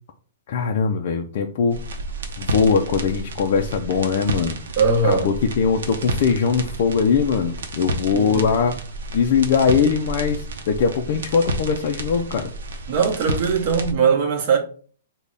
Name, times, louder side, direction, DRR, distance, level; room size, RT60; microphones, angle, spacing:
voice 1, 0.5-1.8 2.4-4.6 5.0-8.8 9.1-12.5, left 6 dB, 45° left, 0.3 m, -21 dB
sound 1, 1.7-13.9, right 1 dB, 85° right, 0.6 m, -31 dB
voice 2, 4.8-5.3 8.1-8.5 12.9-14.6, right 5 dB, 40° right, 0.8 m, -20 dB
3.3 x 2.1 x 3.8 m
hypercardioid pair, 170°, 0 cm